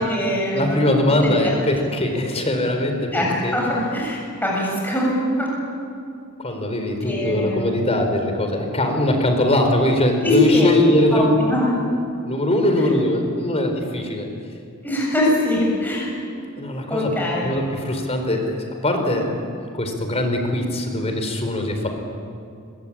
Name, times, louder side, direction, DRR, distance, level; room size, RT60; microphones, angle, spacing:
voice 1, 0.0-1.3 3.1-5.5 7.0-7.6 10.2-10.7 11.1-11.7 14.8-16.1 16.9-17.5, left 1 dB, 10° left, -4 dB, 7.1 m, -22 dB
voice 2, 0.5-3.6 6.4-11.6 12.2-14.3 16.6-17.1 17.4-19.3 19.7-21.9, left 1 dB, 30° left, 5 dB, 4.4 m, -21 dB
26.5 x 23.0 x 8.8 m, 2.4 s
head